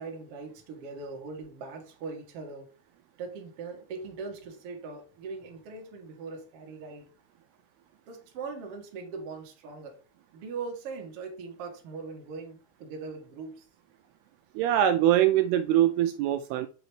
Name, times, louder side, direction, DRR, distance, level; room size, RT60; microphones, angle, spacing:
voice 1, 0.0-2.7 3.2-7.1 8.1-10.0 10.3-13.7, right 4 dB, 60° right, 2 dB, 1.6 m, -40 dB
voice 2, 14.6-16.7, right 11 dB, 85° right, 8 dB, 2.4 m, -23 dB
8.0 x 4.0 x 3.2 m, 0.37 s
omnidirectional pair, 4.8 m